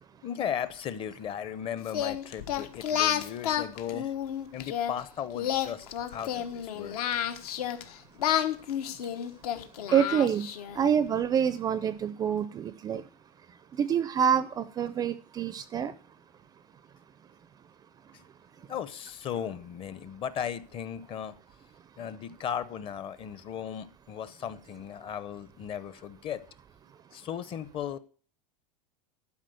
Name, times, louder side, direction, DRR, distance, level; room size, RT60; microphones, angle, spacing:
voice 1, 0.2-4.1 4.5-7.0 18.1-18.2 18.7-21.3 22.0-26.4 27.1-28.0, left 9 dB, 30° left, 15 dB, 0.7 m, -36 dB
Singing, 1.9-4.9 5.3-7.8 8.2-10.8, left 10 dB, 75° left, 1.4 m, -30 dB
voice 2, 9.9-10.5 10.8-13.0 13.8-15.9, right 8 dB, 20° right, 15 dB, 0.4 m, -26 dB
12.0 x 5.0 x 7.7 m, 0.41 s
supercardioid pair, 150°, 19 cm